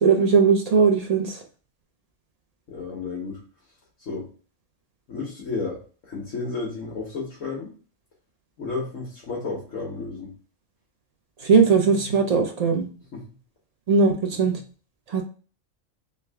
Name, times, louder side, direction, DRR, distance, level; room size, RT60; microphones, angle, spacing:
voice 1, 0.0-1.4 11.4-12.9 13.9-14.6 15.1-15.2, right 5 dB, 65° right, 3 dB, 0.3 m, -19 dB
voice 2, 2.7-3.4 4.1-4.2 5.1-7.7 8.6-10.3 13.1-13.2, left 4 dB, 70° left, -4 dB, 1.4 m, -32 dB
3.4 x 3.4 x 3.3 m, 0.39 s
omnidirectional pair, 1.4 m